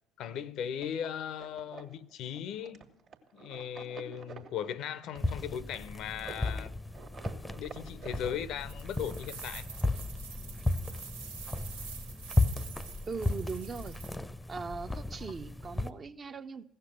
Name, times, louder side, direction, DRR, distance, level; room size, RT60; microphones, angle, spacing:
voice 1, 0.2-2.8 3.3-6.8 7.5-9.7, left 9 dB, 55° left, 0.5 m, -38 dB
sound 1, 0.8-9.3, right 5 dB, 50° right, 1.5 m, -49 dB
sound 2, 5.2-15.9, left 2 dB, 10° left, 0.6 m, -35 dB
sound 3, 8.6-14.2, right 6 dB, 75° right, 0.8 m, -47 dB
voice 2, 13.1-14.0 14.5-16.6, right 5 dB, 35° right, 0.6 m, -39 dB
16.0 x 6.7 x 9.0 m
figure-of-eight pair, 55°, 0 cm